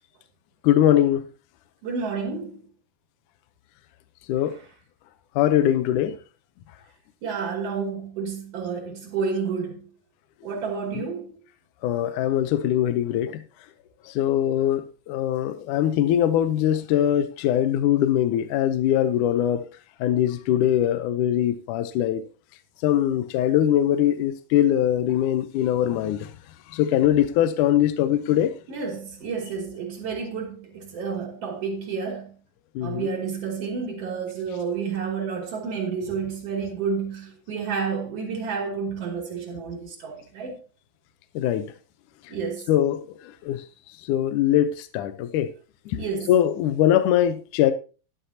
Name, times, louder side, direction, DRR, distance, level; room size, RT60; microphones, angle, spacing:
voice 1, 0.6-1.2 4.3-4.6 5.4-6.2 10.9-11.0 11.8-13.4 14.1-19.6 20.0-22.2 22.8-26.3 26.7-28.5 32.8-33.1 41.4-41.7 42.7-43.6 44.1-45.5 45.9-46.0 46.3-47.7, left 11 dB, 75° left, 2.0 m, -22 dB
voice 2, 1.8-2.6 4.4-4.6 7.2-9.9 10.4-11.4 28.7-32.3 32.8-40.6 42.3-42.7 45.9-46.4, right 5 dB, 45° right, 3.2 m, -30 dB
12.5 x 11.0 x 2.8 m
omnidirectional pair, 4.1 m